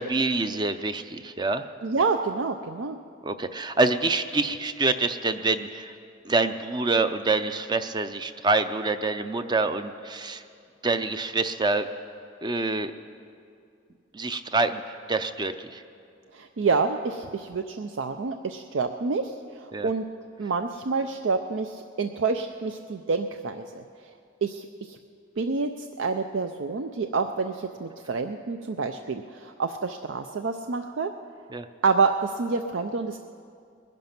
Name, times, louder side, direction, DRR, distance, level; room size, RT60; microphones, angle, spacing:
voice 1, 0.0-1.7 3.2-5.9 6.3-10.4 10.8-11.9 12.4-12.9 14.1-14.8 15.1-15.8 19.7-19.9 31.5-31.7, right 3 dB, 20° right, 10 dB, 0.5 m, -26 dB
voice 2, 1.8-3.0 16.3-19.3 19.8-20.0 20.4-23.8 24.4-25.0 25.4-31.1 31.8-33.2, right 4 dB, 75° right, 7 dB, 0.5 m, -28 dB
20.5 x 10.5 x 5.9 m, 2.4 s
head